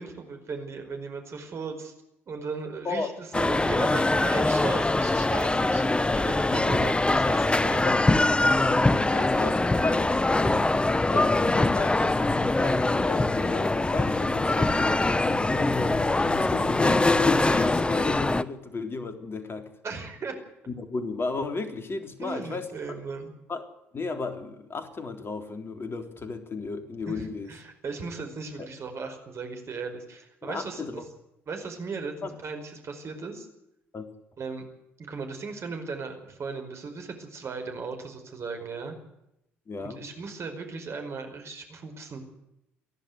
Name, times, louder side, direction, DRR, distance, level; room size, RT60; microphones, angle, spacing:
voice 1, 0.0-1.9 2.3-7.9 9.1-9.2 19.8-20.4 22.2-23.3 27.1-31.0 31.5-33.5 34.4-34.6 35.0-38.9 39.8-42.2, right 4 dB, 45° right, 6 dB, 5.0 m, -37 dB
voice 2, 2.9-3.2 6.5-6.8 7.6-10.7 11.1-19.7 20.7-22.7 23.5-27.5 28.6-28.7 30.4-31.0 32.2-32.3 33.9-34.1 39.7-40.0, left 3 dB, 40° left, 7 dB, 3.6 m, -34 dB
sound 1, 3.3-18.4, left 2 dB, 15° left, 1.0 m, -23 dB
sound 2, 11.7-17.8, left 3 dB, 60° left, 4.0 m, -44 dB
29.5 x 11.5 x 8.0 m, 0.85 s
hypercardioid pair, 50°, 6 cm